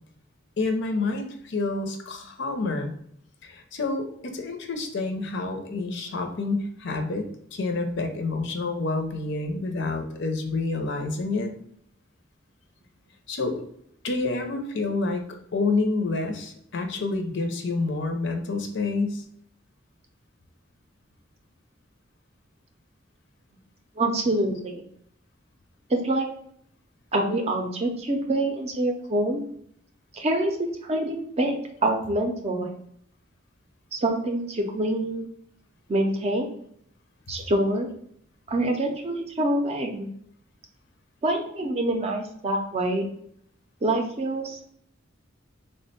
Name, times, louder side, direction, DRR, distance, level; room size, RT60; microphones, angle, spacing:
voice 1, 0.6-2.9 3.4-11.5 13.3-13.6 14.0-15.2 15.5-19.2, left 3 dB, 65° left, 5 dB, 0.5 m, -28 dB
voice 2, 24.0-24.8 25.9-26.3 27.1-29.4 30.1-31.5 31.8-32.7 33.9-35.3 35.9-36.5 37.3-37.9 38.5-40.1 41.2-43.1 43.8-44.7, right 1 dB, 35° right, 3 dB, 0.5 m, -26 dB
3.4 x 2.1 x 4.0 m, 0.68 s
head